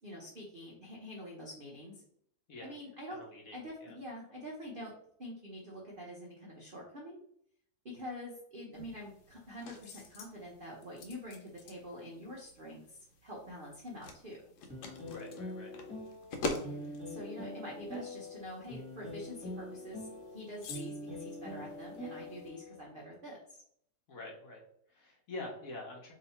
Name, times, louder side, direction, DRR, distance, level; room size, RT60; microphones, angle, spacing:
voice 1, 0.0-1.9 2.6-3.2 3.5-4.9 5.2-7.2 7.8-14.4 16.6-23.6, equal, 70° right, -3 dB, 0.5 m, -46 dB
voice 2, 3.1-3.6 3.8-4.0 15.0-15.7 16.5-17.1 24.1-26.1, left 2 dB, 55° left, -1 dB, 1.1 m, -46 dB
sound 1, 8.7-22.5, left 3 dB, 85° left, 1.4 m, -46 dB
sound 2, 14.7-22.8, left 1 dB, 5° left, 1.3 m, -44 dB
3.1 x 2.8 x 4.1 m, 0.68 s
omnidirectional pair, 2.1 m